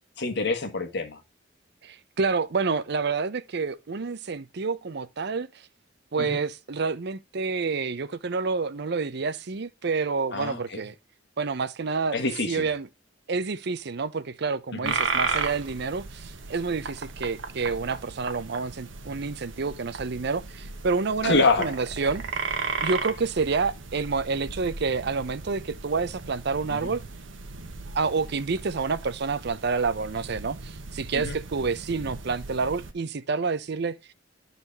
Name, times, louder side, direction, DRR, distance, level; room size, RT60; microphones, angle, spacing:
voice 1, 0.2-1.2 6.2-6.4 10.3-10.8 12.1-12.7 14.7-14.9 21.2-21.8 26.7-26.9 31.2-31.4, left 3 dB, 60° left, 1.6 m, -26 dB
voice 2, 1.8-5.5 6.1-10.9 11.4-12.2 12.5-12.9 13.3-22.2 22.8-27.0 27.9-34.0, right 4 dB, 60° right, 0.6 m, -28 dB
sound 1, 14.8-32.9, right 4 dB, 75° right, 1.1 m, -35 dB
11.0 x 4.1 x 4.0 m
head